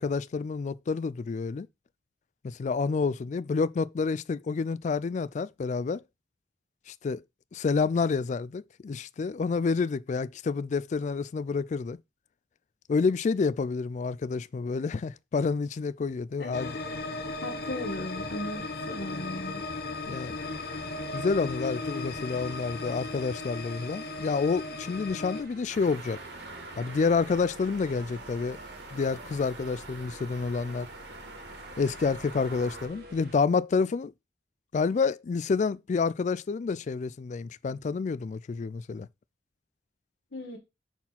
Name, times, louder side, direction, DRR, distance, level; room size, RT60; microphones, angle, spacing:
voice 1, 0.0-1.7 2.4-6.0 6.9-7.2 7.5-12.0 12.9-16.8 20.1-20.4 21.1-26.2 26.8-28.6 28.9-30.9 31.8-34.1 34.7-39.1, left 4 dB, 40° left, 0.3 m, -29 dB
voice 2, 16.4-16.7 17.4-19.6 40.3-40.6, left 1 dB, 90° left, 1.5 m, -37 dB
sound 1, 16.5-25.4, left 3 dB, 60° left, 0.9 m, -36 dB
sound 2, 20.4-33.4, right 1 dB, 60° right, 1.8 m, -50 dB
sound 3, 25.7-32.9, right 2 dB, 75° right, 2.0 m, -45 dB
5.9 x 4.3 x 5.8 m
head